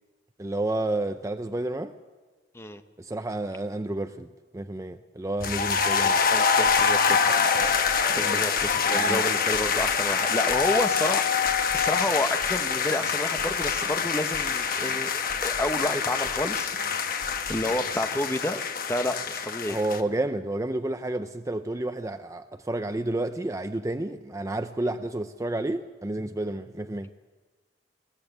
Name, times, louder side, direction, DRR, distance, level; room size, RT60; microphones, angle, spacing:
voice 1, 0.4-1.9 3.0-6.2 8.1-8.4 8.8-9.3 19.7-27.1, right 2 dB, 20° right, 0.5 m, -30 dB
sound 1, 5.4-20.0, left 6 dB, 55° left, 1.1 m, -25 dB
voice 2, 6.0-7.5 8.2-19.8, left 1 dB, 15° left, 0.9 m, -30 dB
sound 2, 6.7-18.2, equal, 35° right, 5.6 m, -48 dB
20.5 x 16.0 x 8.0 m
head